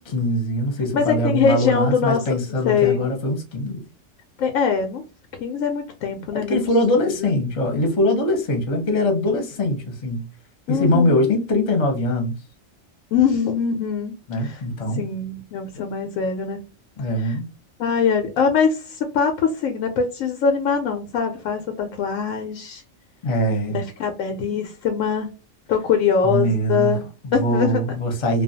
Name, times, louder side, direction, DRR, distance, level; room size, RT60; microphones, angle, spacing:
voice 1, 0.0-3.8 6.3-10.2 10.7-12.3 14.3-15.1 17.0-17.5 23.2-23.8 26.2-27.0 27.2-28.4, left 1 dB, 30° left, 0.7 m, -22 dB
voice 2, 0.9-2.2 2.6-3.0 4.4-5.0 5.4-6.6 7.0-7.3 10.7-11.3 13.1-14.6 14.9-16.7 17.2-17.4 17.8-22.8 23.7-25.3 25.7-27.1 27.3-28.0, left 6 dB, 90° left, 1.0 m, -22 dB
2.4 x 2.2 x 2.6 m
omnidirectional pair, 1.3 m